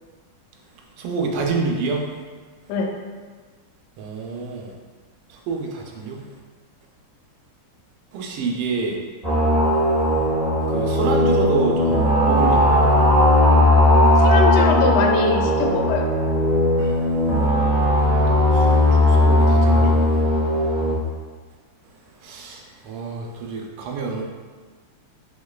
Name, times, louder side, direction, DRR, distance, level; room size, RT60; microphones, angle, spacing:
voice 1, 1.0-2.1 4.0-4.7 5.5-6.3 8.1-9.0 10.7-12.9 16.8-16.9 18.5-20.0 22.2-24.2, right 4 dB, 90° right, 1 dB, 1.6 m, -27 dB
sound 1, 9.2-21.0, left 1 dB, ahead, 0.8 m, -17 dB
voice 2, 14.2-16.1, left 4 dB, 85° left, 2 dB, 1.5 m, -22 dB
5.1 x 3.8 x 2.3 m, 1.5 s
omnidirectional pair, 2.4 m